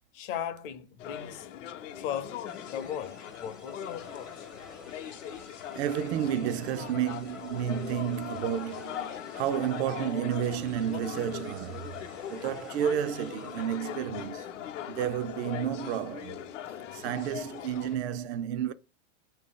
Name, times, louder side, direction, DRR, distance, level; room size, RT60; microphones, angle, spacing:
voice 1, 0.1-1.5 1.9-4.5, left 9 dB, 50° left, 0.6 m, -37 dB
sound 1, 1.0-18.0, left 10 dB, 90° left, 0.7 m, -40 dB
sound 2, 2.4-14.1, equal, ahead, 0.3 m, -53 dB
voice 2, 5.7-11.9 12.3-14.5 14.9-16.4 16.9-18.7, right 9 dB, 60° right, 0.5 m, -31 dB
4.6 x 2.8 x 3.6 m
supercardioid pair, 135°, 36 cm